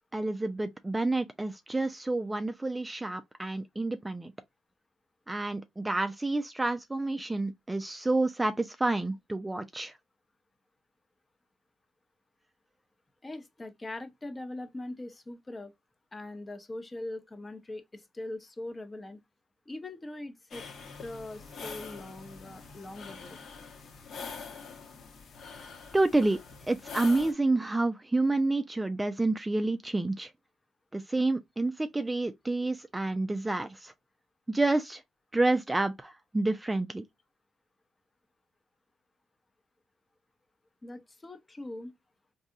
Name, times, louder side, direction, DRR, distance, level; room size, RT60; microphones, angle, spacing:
voice 1, 0.1-4.3 5.3-9.9 25.9-30.3 30.9-33.9 34.5-35.0 35.3-37.0, right 2 dB, 15° right, 0.4 m, -29 dB
voice 2, 13.2-15.7 16.1-19.2 19.7-20.7 21.0-23.4 40.8-41.9, left 2 dB, 20° left, 0.7 m, -41 dB
sound 1, 20.5-27.3, left 5 dB, 60° left, 1.0 m, -44 dB
4.0 x 2.7 x 2.4 m
cardioid pair, 90°, 0 cm